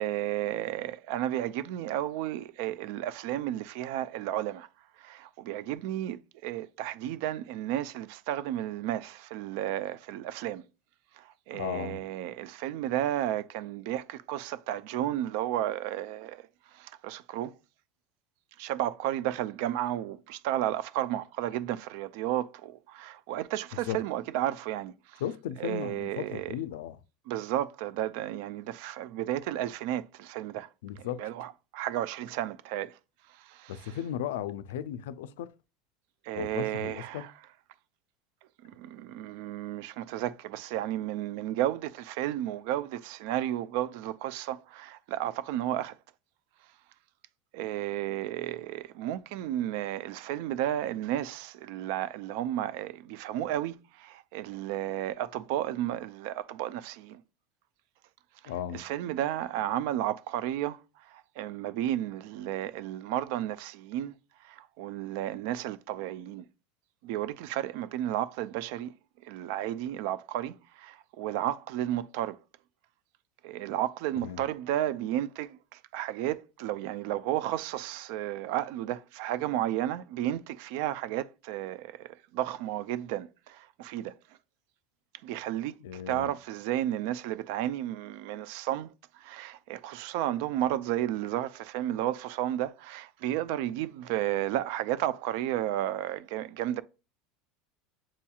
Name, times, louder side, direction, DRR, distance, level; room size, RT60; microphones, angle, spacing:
voice 1, 0.0-4.7 5.0-10.6 11.2-16.5 16.7-17.6 18.6-25.2 25.6-26.6 27.3-30.7 31.0-33.0 33.4-34.0 36.2-37.3 38.6-46.0 47.5-57.2 58.4-64.1 64.4-66.4 67.0-68.9 69.2-72.4 73.4-84.1 85.2-96.8, right 12 dB, 70° right, 0.4 m, -33 dB
voice 2, 11.5-12.0 23.9-24.0 25.2-27.0 30.8-31.3 33.7-35.5 36.3-37.3 58.5-58.9 74.2-74.4 85.8-86.3, left 10 dB, 85° left, 0.4 m, -36 dB
7.3 x 2.8 x 2.3 m
supercardioid pair, 125°, 0 cm